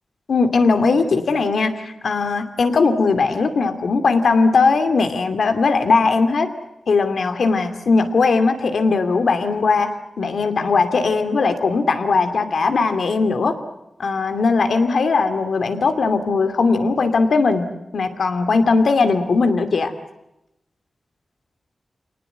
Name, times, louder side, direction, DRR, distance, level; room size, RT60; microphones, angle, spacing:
voice 1, 0.3-6.5 6.9-9.9 10.2-13.6 14.0-19.9, left 4 dB, 85° left, 8 dB, 2.5 m, -19 dB
27.5 x 19.0 x 9.3 m, 0.89 s
wide cardioid pair, 135°, 0 cm